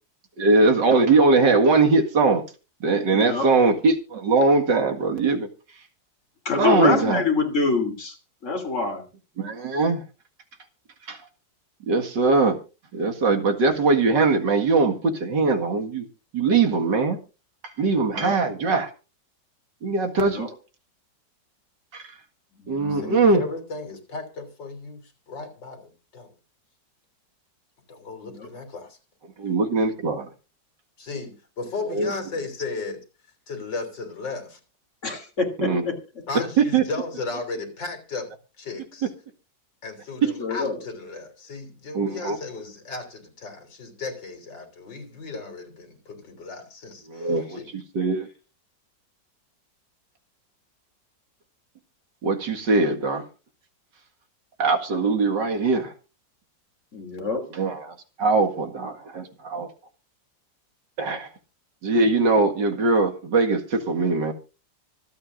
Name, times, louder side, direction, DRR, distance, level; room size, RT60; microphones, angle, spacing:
voice 1, 0.4-2.4 2.8-5.5 6.5-7.2 9.4-10.0 11.1-11.2 11.9-12.6 12.9-16.0 16.3-17.2 17.6-18.9 19.8-20.5 21.9-22.0 22.7-23.4 29.4-30.3 31.9-32.1 35.6-35.8 36.6-36.8 41.9-42.4 47.1-48.3 52.2-53.2 54.6-55.9 57.5-59.7 61.0-61.3 61.8-64.3, right 3 dB, 75° right, 4 dB, 2.5 m, -21 dB
voice 2, 3.1-3.5 6.4-8.1 8.4-9.0 18.1-18.4 20.3-20.5 22.6-23.3 28.2-28.5 35.0-35.9 40.4-40.8 56.9-57.4, left 4 dB, 40° left, 3 dB, 3.2 m, -26 dB
voice 3, 22.9-26.3 27.9-29.0 31.0-33.0 33.5-34.6 36.3-38.3 38.6-39.1 39.8-47.7, left 3 dB, 75° left, 5 dB, 4.0 m, -35 dB
25.0 x 8.7 x 2.6 m, 0.31 s
omnidirectional pair, 2.0 m